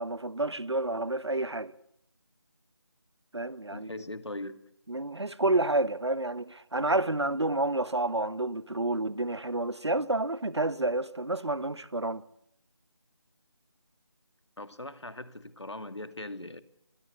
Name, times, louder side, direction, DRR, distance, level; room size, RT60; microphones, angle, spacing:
voice 1, 0.0-1.7 3.3-3.9 4.9-12.2, right 2 dB, 70° right, 1.4 m, -29 dB
voice 2, 3.7-4.7 14.6-16.6, left 1 dB, 75° left, 2.3 m, -40 dB
25.5 x 22.5 x 8.3 m
figure-of-eight pair, 165°, 15 cm